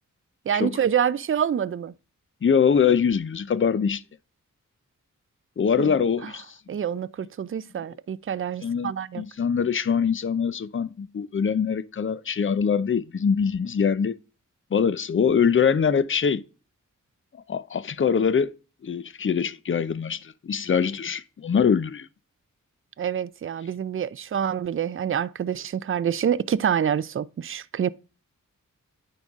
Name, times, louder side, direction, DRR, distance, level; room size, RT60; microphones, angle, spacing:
voice 1, 0.5-1.9 5.8-6.0 6.2-6.3 6.7-9.2 23.0-27.9, right 8 dB, 40° right, 0.4 m, -26 dB
voice 2, 2.4-4.0 5.6-6.6 8.6-14.2 14.7-16.4 17.5-18.5 18.8-22.1, left 6 dB, 40° left, 0.6 m, -23 dB
9.3 x 4.0 x 3.6 m
cardioid pair, 50°, 33 cm